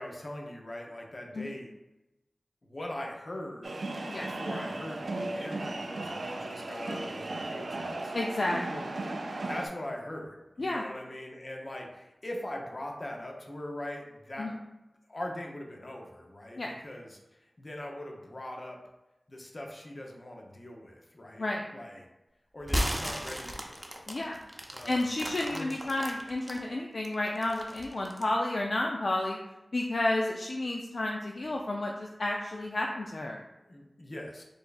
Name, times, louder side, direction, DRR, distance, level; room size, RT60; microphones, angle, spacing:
voice 1, 0.0-1.7 2.6-3.8 4.2-8.2 9.5-14.6 15.1-18.8 19.3-21.5 21.7-22.1 22.5-24.0 24.7-25.8 33.6-34.4, left 1 dB, 55° left, 0 dB, 0.8 m, -41 dB
sound 1, 3.6-9.7, right 2 dB, 85° right, 0.4 m, -36 dB
voice 2, 8.1-8.9 10.6-10.8 14.4-14.6 16.6-16.7 21.4-21.6 24.1-24.4 24.9-29.4 29.7-33.5, left 2 dB, 70° left, 0 dB, 0.3 m, -31 dB
sound 2, 22.6-26.6 27.0-28.3, equal, 15° right, 0.6 m, -34 dB
4.3 x 3.4 x 2.5 m, 0.96 s
cardioid pair, 40°, 0 cm